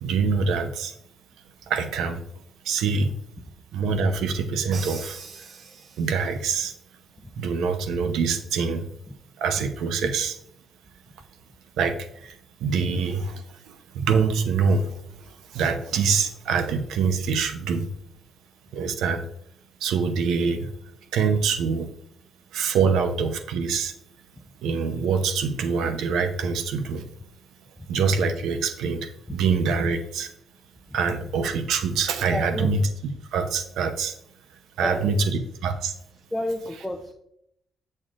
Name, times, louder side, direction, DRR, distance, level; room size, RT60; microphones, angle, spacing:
voice 1, 0.0-0.9 1.7-2.2 2.6-3.1 3.7-5.5 6.0-6.7 7.4-8.9 9.4-10.4 11.8-13.3 13.7-17.9 18.7-19.2 19.8-20.7 21.1-21.9 22.5-23.9 24.6-27.0 27.9-30.3 30.9-32.8 33.3-34.1 34.8-35.9, right 5 dB, 85° right, 8 dB, 0.7 m, -25 dB
Crash cymbal, 4.7-6.4, right 5 dB, 50° right, 0.8 m, -40 dB
voice 2, 32.3-32.7 34.8-35.1 36.3-37.1, left 1 dB, 10° left, 3 dB, 0.6 m, -29 dB
8.8 x 6.5 x 2.5 m, 0.73 s
cardioid pair, 90°, 0 cm